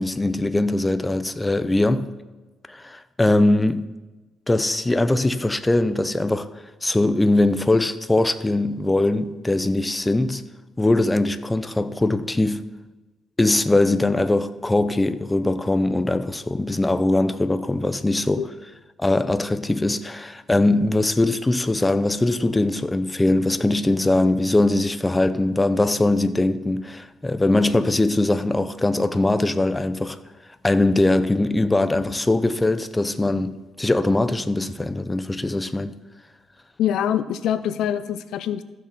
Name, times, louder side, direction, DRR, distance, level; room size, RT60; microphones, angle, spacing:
voice 1, 0.0-2.1 2.7-3.8 4.5-6.5 6.8-10.4 10.8-12.6 13.4-18.4 19.0-30.2 30.6-35.9, left 2 dB, 15° left, 0.6 m, -21 dB
voice 2, 36.8-38.6, left 10 dB, 80° left, 0.4 m, -24 dB
14.5 x 6.3 x 4.1 m
cardioid pair, 90°, 0 cm